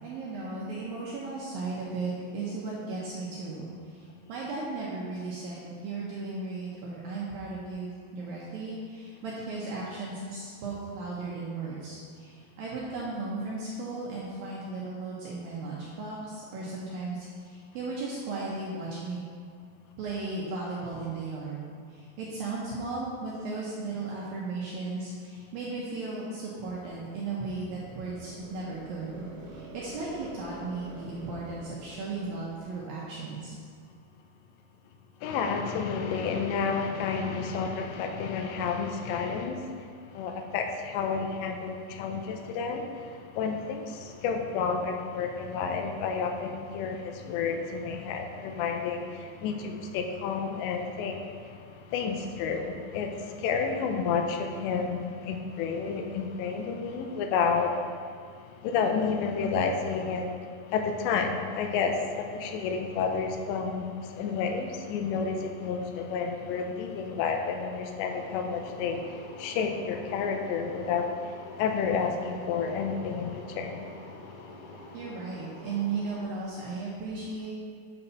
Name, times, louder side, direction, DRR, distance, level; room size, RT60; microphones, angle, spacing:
voice 1, 0.0-19.2 20.0-21.6 21.9-33.6 74.9-77.5, right 3 dB, 80° right, -5 dB, 2.1 m, -36 dB
sound 1, 26.5-32.8, right 2 dB, 55° right, 2.4 m, -47 dB
voice 2, 35.2-39.6 40.1-51.6 51.9-57.7 58.6-60.3 60.7-73.9, left 5 dB, 85° left, 4 dB, 2.8 m, -30 dB
sound 2, 68.1-76.2, left 1 dB, 40° left, 2.6 m, -47 dB
8.9 x 4.1 x 5.6 m, 2.1 s
omnidirectional pair, 5.2 m